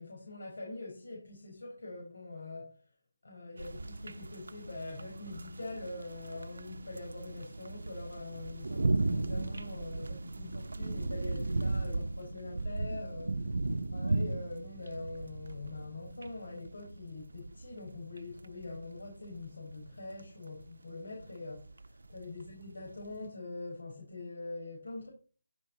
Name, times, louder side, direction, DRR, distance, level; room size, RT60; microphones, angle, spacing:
voice 1, 0.0-2.8 3.2-13.6 13.9-25.1, left 2 dB, 75° left, 4.9 m, -44 dB
sound 1, 3.6-23.3, right 2 dB, 80° right, 1.1 m, -37 dB
14.5 x 6.0 x 4.2 m
hypercardioid pair, 175°, 0 cm